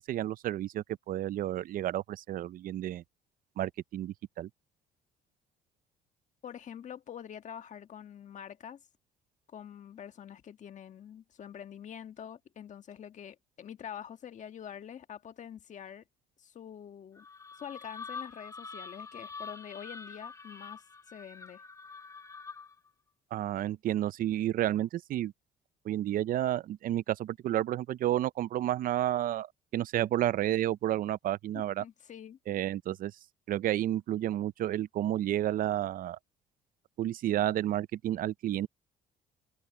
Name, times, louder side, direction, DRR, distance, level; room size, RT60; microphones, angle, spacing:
voice 1, 0.0-3.0 3.6-4.5 23.3-25.3 25.8-31.8 32.5-33.1 33.5-36.2 37.0-38.7, right 12 dB, 55° right, 0.5 m, -31 dB
voice 2, 6.4-8.8 9.5-16.0 16.4-17.3 17.6-21.6 31.8-32.4, left 9 dB, 45° left, 1.6 m, -46 dB
sound 1, 17.2-22.9, left 5 dB, 15° left, 0.6 m, -45 dB
cardioid pair, 110°, 17 cm